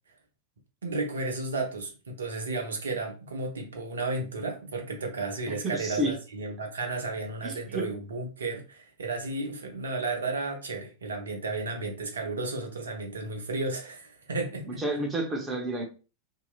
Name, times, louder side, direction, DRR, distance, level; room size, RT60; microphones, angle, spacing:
voice 1, 0.8-15.1, right 3 dB, 70° right, 0.8 m, -33 dB
voice 2, 5.5-6.1 7.4-7.9 14.7-15.8, right 1 dB, 20° right, 0.9 m, -30 dB
2.9 x 2.8 x 2.4 m
figure-of-eight pair, 90°, 0 cm